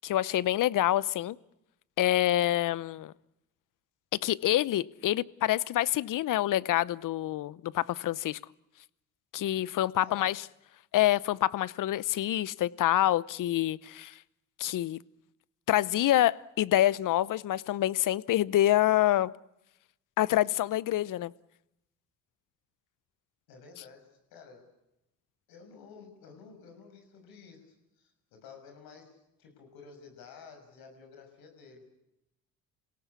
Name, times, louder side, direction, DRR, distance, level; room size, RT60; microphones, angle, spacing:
voice 1, 0.0-1.4 2.0-3.1 4.2-8.4 9.3-10.5 10.9-14.2 14.6-15.0 15.7-19.3 20.2-21.3, left 13 dB, 60° left, 20 dB, 0.8 m, -27 dB
voice 2, 9.9-10.4 23.5-24.7 25.5-31.9, left 5 dB, 75° left, 5 dB, 6.5 m, -52 dB
27.0 x 17.5 x 8.4 m, 0.87 s
hypercardioid pair, 60°, 36 cm